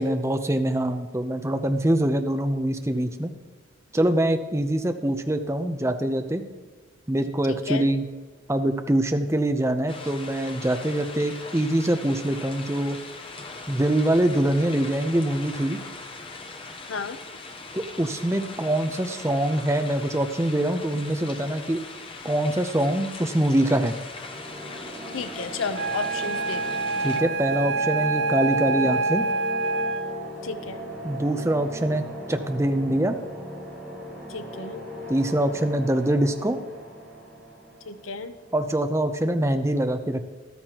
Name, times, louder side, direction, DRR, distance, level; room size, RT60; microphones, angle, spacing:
voice 1, 0.0-3.3 3.9-6.4 7.1-8.1 8.5-13.0 13.7-15.8 17.7-21.8 22.2-23.9 27.0-29.3 31.0-33.2 35.1-36.6 38.5-40.2, right 1 dB, 15° right, 7 dB, 0.6 m, -24 dB
voice 2, 7.5-7.9 16.9-17.2 25.1-26.8 30.4-30.9 34.3-34.8 37.9-38.3, left 5 dB, 90° left, 10 dB, 0.7 m, -33 dB
sound 1, 9.9-27.2, left 3 dB, 25° left, 0.8 m, -40 dB
sound 2, 24.1-38.8, left 1 dB, 5° left, 3.8 m, -38 dB
Wind instrument woodwind instrument, 25.7-30.3, right 3 dB, 75° right, 0.6 m, -26 dB
13.5 x 12.5 x 2.9 m, 1.4 s
head